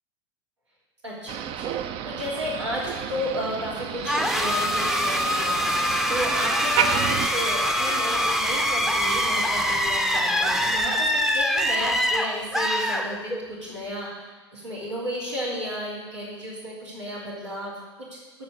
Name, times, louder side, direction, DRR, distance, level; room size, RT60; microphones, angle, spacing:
voice 1, 1.0-17.7 18.1-18.2, equal, 90° right, -7 dB, 3.1 m, -33 dB
Motor vehicle (road), 1.3-7.3, right 9 dB, 40° right, 0.6 m, -31 dB
sound 1, 4.0-13.6, equal, 5° right, 0.7 m, -24 dB
13.0 x 4.4 x 6.4 m, 1.2 s
figure-of-eight pair, 85°, 14 cm